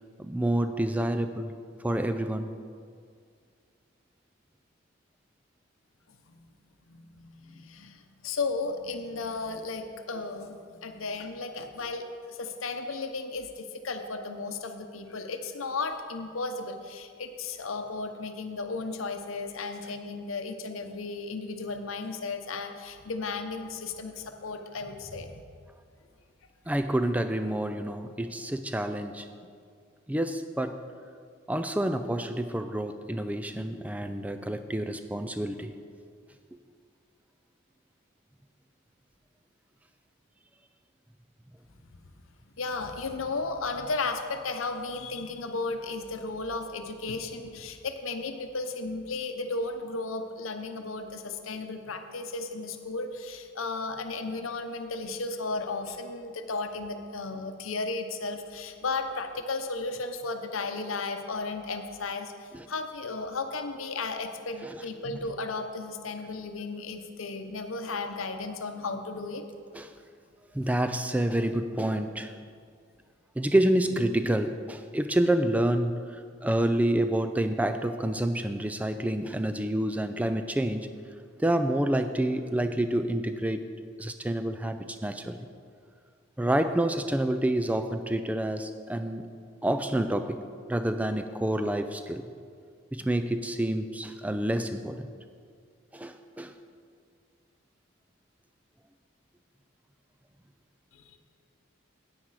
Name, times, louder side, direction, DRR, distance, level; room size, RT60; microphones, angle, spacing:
voice 1, 0.2-1.6 1.8-2.5 26.7-29.3 30.1-30.8 31.5-35.7 62.5-62.7 64.6-64.8 69.7-69.9 70.5-72.3 73.4-80.9 81.4-83.6 84.0-85.4 86.4-89.3 89.6-90.4 90.7-92.3 92.9-95.1 95.9-96.5, right 1 dB, 5° right, 9 dB, 0.4 m, -28 dB
voice 2, 6.9-25.4 41.8-42.0 42.6-69.4 100.9-101.2, left 3 dB, 85° left, 7 dB, 0.8 m, -34 dB
9.8 x 8.9 x 4.8 m, 2.2 s
head